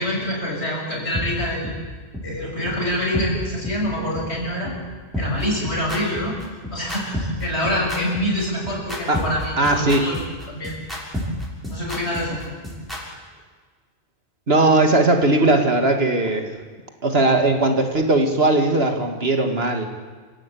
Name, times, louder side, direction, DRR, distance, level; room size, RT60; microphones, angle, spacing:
voice 1, 0.0-1.7 2.2-4.7 5.2-6.4 6.7-10.2 10.5-10.8 11.7-12.4, left 1 dB, 80° left, -2 dB, 7.1 m, -26 dB
sound 1, 1.1-1.2 1.6-1.7 2.1-2.2 2.6-2.7 3.1-3.3 3.6-3.7 4.1-4.2 4.6-4.7 5.1-13.0, left 1 dB, ahead, 6.6 m, -29 dB
voice 2, 9.6-10.1 14.5-16.5 17.0-19.9, right 2 dB, 65° right, 5 dB, 2.6 m, -18 dB
28.0 x 16.0 x 8.7 m, 1.5 s
omnidirectional pair, 1.1 m